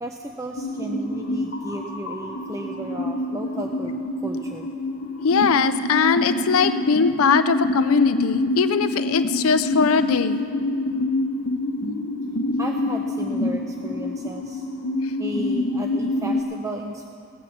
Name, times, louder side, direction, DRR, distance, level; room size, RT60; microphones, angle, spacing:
voice 1, 0.0-4.7 12.6-14.6 15.2-17.1, right 1 dB, 15° right, 2 dB, 0.6 m, -34 dB
sound 1, 0.6-16.4, left 2 dB, 45° left, 1.0 m, -26 dB
voice 2, 5.2-10.4 15.0-15.1, left 5 dB, 70° left, 11 dB, 0.5 m, -21 dB
17.0 x 9.0 x 7.3 m, 2.5 s
head